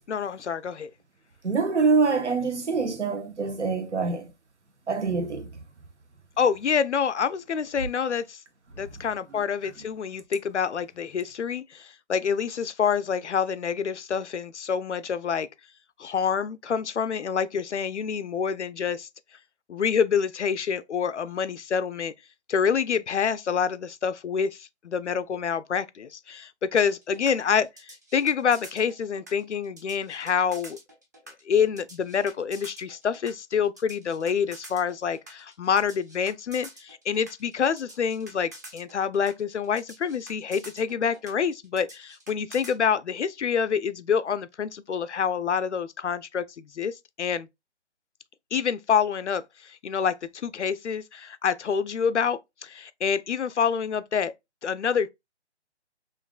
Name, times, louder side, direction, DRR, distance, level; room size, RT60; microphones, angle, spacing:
voice 1, 0.1-0.9 6.4-8.4 8.8-15.5 16.0-19.1 19.7-22.1 22.5-30.8 31.5-47.5 48.5-54.3 54.6-55.1, left 7 dB, 85° left, 0.6 m, -27 dB
voice 2, 1.4-4.3 4.9-5.6, right 4 dB, 85° right, 1.1 m, -25 dB
sound 1, 26.8-42.8, right 1 dB, 15° right, 0.5 m, -47 dB
5.7 x 2.6 x 2.3 m
figure-of-eight pair, 150°, 34 cm